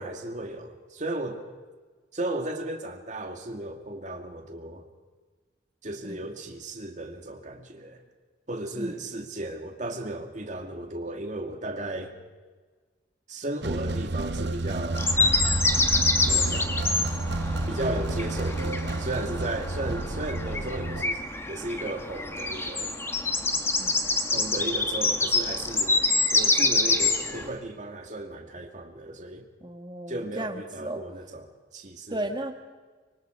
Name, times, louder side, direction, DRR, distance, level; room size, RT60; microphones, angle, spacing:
voice 1, 0.0-1.4 2.1-4.8 5.8-8.0 8.5-12.2 13.3-15.1 16.2-16.7 17.7-22.9 24.3-29.4 30.1-32.2, right 1 dB, 45° right, 3 dB, 2.3 m, -35 dB
sound 1, 13.6-21.0, right 2 dB, 75° right, 0.9 m, -30 dB
sound 2, 15.0-27.5, left 3 dB, 15° left, 1.5 m, -26 dB
voice 2, 23.8-24.1 29.6-31.0 32.1-32.5, right 1 dB, 25° right, 5 dB, 1.8 m, -35 dB
24.5 x 24.0 x 4.7 m, 1.4 s
head